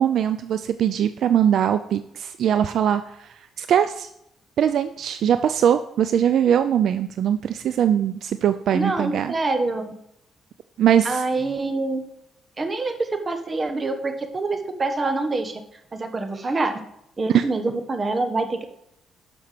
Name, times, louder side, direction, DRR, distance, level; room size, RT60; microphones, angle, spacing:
voice 1, 0.0-4.1 4.6-9.3 10.8-11.2 17.3-17.4, right 9 dB, 70° right, 11 dB, 0.4 m, -21 dB
voice 2, 8.7-9.9 11.0-12.0 12.6-15.6 15.9-16.8 17.2-18.7, right 3 dB, 30° right, 8 dB, 1.4 m, -25 dB
12.5 x 5.8 x 5.0 m, 0.77 s
cardioid pair, 90°, 0 cm